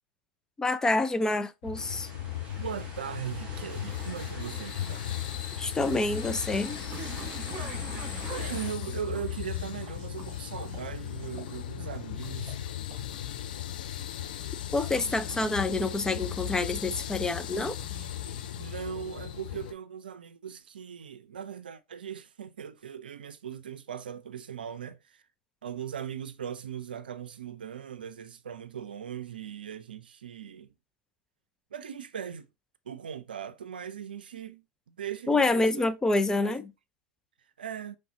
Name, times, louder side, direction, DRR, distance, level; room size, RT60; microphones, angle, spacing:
voice 1, 0.6-2.1 5.6-6.8 14.7-17.8 35.3-36.7, left 2 dB, 10° left, 0.5 m, -27 dB
sound 1, 1.6-19.7, left 12 dB, 70° left, 0.5 m, -37 dB
sound 2, 1.7-8.7, right 3 dB, 20° right, 3.1 m, -46 dB
voice 2, 2.6-5.1 8.3-12.6 18.6-25.2 25.6-30.7 31.7-32.5 32.9-35.7 36.4-36.6 37.6-38.0, right 8 dB, 80° right, 0.5 m, -39 dB
sound 3, 6.8-19.1, right 7 dB, 40° right, 1.6 m, -47 dB
5.4 x 3.2 x 2.8 m
hypercardioid pair, 90°, 5 cm